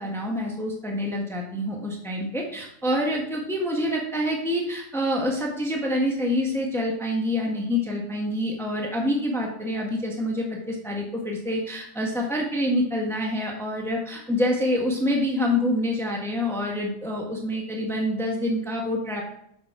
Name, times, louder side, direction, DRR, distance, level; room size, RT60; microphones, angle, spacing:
voice 1, 0.0-19.2, left 1 dB, ahead, 0 dB, 1.2 m, -26 dB
6.8 x 5.3 x 5.7 m, 0.74 s
omnidirectional pair, 1.4 m